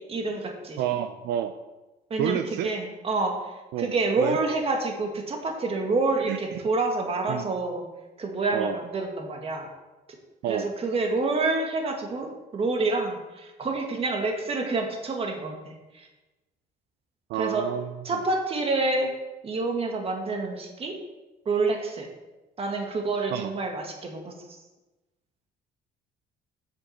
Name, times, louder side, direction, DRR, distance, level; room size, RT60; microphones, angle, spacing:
voice 1, 0.1-0.8 2.1-7.8 8.2-9.7 10.5-16.1 17.4-17.7 18.0-19.1 19.4-21.0 21.5-22.1 22.6-24.3, right 3 dB, 35° right, 2 dB, 1.8 m, -28 dB
voice 2, 0.8-1.5 2.2-2.7 3.7-4.4 6.3-6.6 7.3-7.5 8.5-8.8 10.4-10.7 17.3-18.0 23.3-23.5, right 10 dB, 80° right, 9 dB, 0.5 m, -29 dB
7.8 x 6.4 x 5.7 m, 1.1 s
cardioid pair, 110°, 17 cm